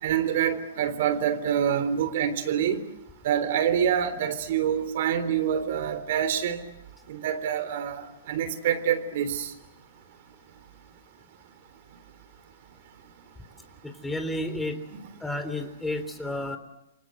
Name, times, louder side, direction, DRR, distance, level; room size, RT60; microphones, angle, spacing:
voice 1, 0.0-2.8 3.2-6.6 7.1-9.5 14.9-15.0, right 9 dB, 60° right, 12 dB, 3.6 m, -26 dB
voice 2, 13.8-14.8 15.2-16.6, left 1 dB, 5° left, 8 dB, 3.5 m, -31 dB
29.0 x 24.5 x 7.9 m, 0.89 s
hypercardioid pair, 120°, 0 cm